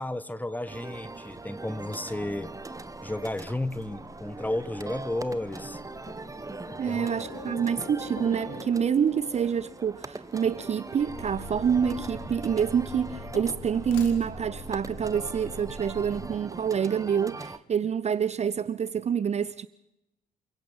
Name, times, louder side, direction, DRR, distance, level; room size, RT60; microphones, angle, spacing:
voice 1, 0.0-2.5 3.0-5.8 6.7-7.1, left 1 dB, 10° left, 1.3 m, -33 dB
sound 1, 0.7-17.6, right 3 dB, 15° right, 1.1 m, -41 dB
sound 2, 2.5-9.5 11.0-16.2, left 2 dB, 50° left, 5.8 m, -43 dB
voice 2, 6.8-19.7, right 7 dB, 35° right, 0.7 m, -27 dB
sound 3, 10.3-11.1 12.0-13.0 13.7-14.7, left 6 dB, 70° left, 3.0 m, -49 dB
29.0 x 17.0 x 5.6 m
figure-of-eight pair, 45°, 21 cm